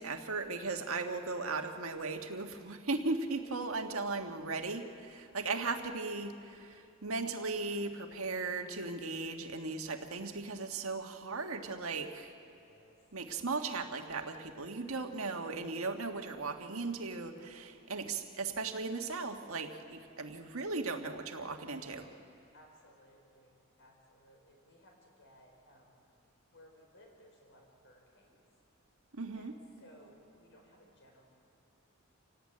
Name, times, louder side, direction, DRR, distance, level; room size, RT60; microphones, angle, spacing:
voice 1, 0.0-12.3 13.1-22.1 29.1-29.5, right 3 dB, 75° right, 5 dB, 1.6 m, -37 dB
voice 2, 3.3-4.4 5.4-5.6 12.6-13.0 20.2-20.3 21.7-22.1 22.5-26.0 26.5-28.4 29.3-31.2, equal, 60° left, 1 dB, 5.5 m, -60 dB
27.0 x 18.0 x 8.8 m, 2.6 s
head